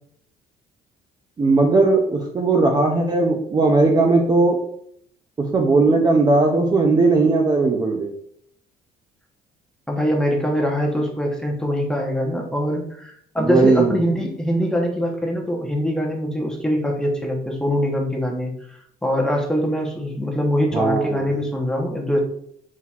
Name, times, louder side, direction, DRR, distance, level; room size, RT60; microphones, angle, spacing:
voice 1, 1.4-4.6 5.4-8.1 13.4-13.9 20.7-21.3, right 3 dB, 25° right, 1 dB, 0.5 m, -18 dB
voice 2, 9.9-22.2, equal, 5° left, 0 dB, 0.9 m, -23 dB
4.2 x 3.9 x 2.4 m, 0.67 s
cardioid pair, 110°, 17 cm